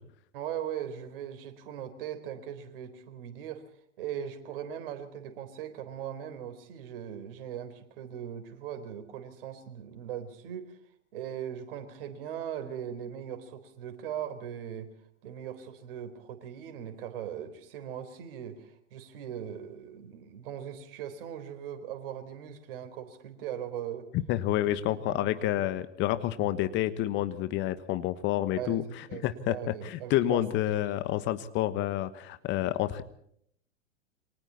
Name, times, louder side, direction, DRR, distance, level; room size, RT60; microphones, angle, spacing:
voice 1, 0.3-3.6 4.0-10.8 11.1-14.9 15.2-24.1 24.6-24.7 25.0-25.6 28.5-30.7, right 9 dB, 50° right, 9 dB, 4.1 m, -39 dB
voice 2, 24.1-28.8 29.2-29.5 29.8-33.0, left 14 dB, 30° left, 13 dB, 1.3 m, -29 dB
28.0 x 24.5 x 4.2 m, 0.67 s
figure-of-eight pair, 95°, 35 cm